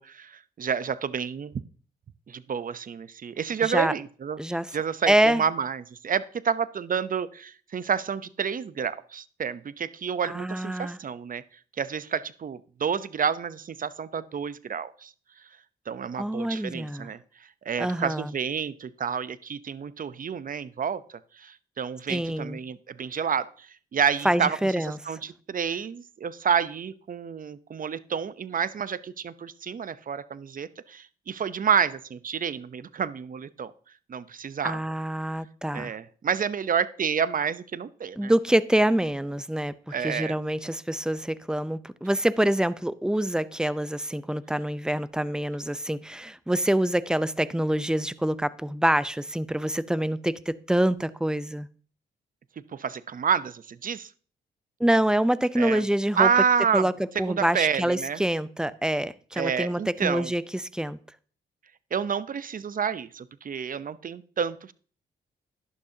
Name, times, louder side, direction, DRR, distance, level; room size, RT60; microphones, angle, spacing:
voice 1, 0.0-1.5 2.3-4.4 4.7-11.4 11.8-15.1 15.9-17.2 17.6-33.7 34.1-34.8 35.7-38.3 39.9-40.3 52.7-54.1 55.6-55.8 56.1-56.9 57.3-58.2 59.4-60.3 61.9-64.7, right 7 dB, 45° right, 0.8 m, -29 dB
voice 2, 3.6-3.9 4.4-4.7 5.1-5.4 10.2-11.0 16.2-17.1 17.8-18.3 22.1-22.6 24.2-25.2 34.6-35.9 38.2-39.7 40.0-51.7 54.8-56.3 56.7-56.9 57.2-61.0, right 1 dB, 5° right, 0.7 m, -26 dB
11.5 x 11.5 x 2.8 m
supercardioid pair, 55°, 19 cm